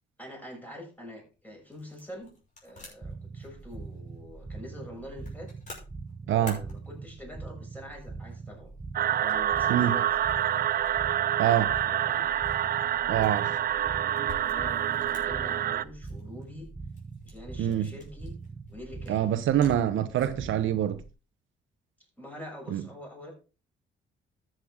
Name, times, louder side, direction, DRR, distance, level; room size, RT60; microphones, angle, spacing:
voice 1, 0.2-2.3 2.6-5.5 6.2-8.7 9.2-10.1 11.8-12.3 14.4-16.7 17.2-18.4 18.7-19.3 19.6-20.0 22.2-23.3, left 1 dB, 10° left, 6.2 m, -45 dB
sound 1, 1.1-20.5, left 3 dB, 40° left, 5.7 m, -53 dB
sound 2, 3.0-21.1, right 4 dB, 20° right, 1.3 m, -43 dB
voice 2, 6.3-6.6 9.7-9.9 11.4-11.7 13.1-13.5 17.6-17.9 19.1-21.0 22.7-22.8, right 11 dB, 80° right, 0.9 m, -25 dB
sound 3, 9.0-15.9, right 11 dB, 50° right, 0.4 m, -27 dB
13.5 x 7.9 x 3.7 m
cardioid pair, 90°, 20 cm